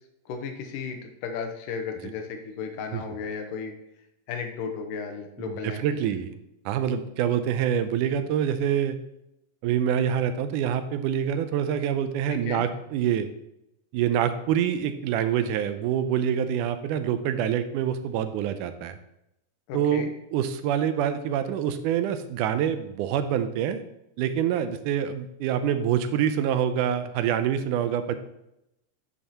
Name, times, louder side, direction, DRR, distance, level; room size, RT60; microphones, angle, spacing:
voice 1, 0.3-3.7 4.3-6.1 12.3-12.6 19.7-20.1, left 6 dB, 80° left, 4 dB, 2.5 m, -34 dB
voice 2, 5.4-6.3 6.7-9.0 9.6-13.3 13.9-19.0 19.7-20.1 20.3-23.8 24.2-28.2, right 9 dB, 80° right, 10 dB, 2.0 m, -26 dB
10.5 x 6.5 x 2.9 m, 0.85 s
omnidirectional pair, 3.9 m